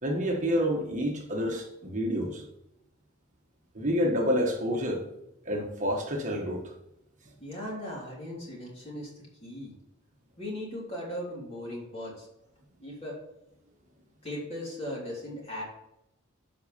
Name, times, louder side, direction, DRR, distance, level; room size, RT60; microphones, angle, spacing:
voice 1, 0.0-2.4 3.7-5.1 5.4-6.7, equal, 35° right, 0 dB, 1.2 m, -28 dB
voice 2, 7.4-9.1 9.4-9.7 10.4-12.3 12.8-13.2 14.2-15.6, left 1 dB, 30° left, -5 dB, 3.4 m, -38 dB
8.0 x 5.3 x 5.1 m, 0.87 s
head